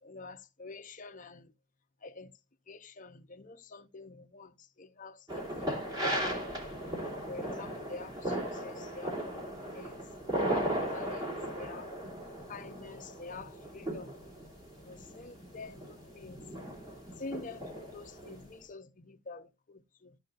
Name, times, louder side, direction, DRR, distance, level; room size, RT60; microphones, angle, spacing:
voice 1, 0.0-1.5 2.0-2.3 2.7-6.1 7.3-10.0 10.3-11.3 11.5-11.9 12.5-14.2 14.8-16.4 17.2-20.2, left 3 dB, 40° left, 0.8 m, -47 dB
sound 1, 5.3-18.4, right 1 dB, 20° right, 3.0 m, -37 dB
13.5 x 5.6 x 2.6 m
head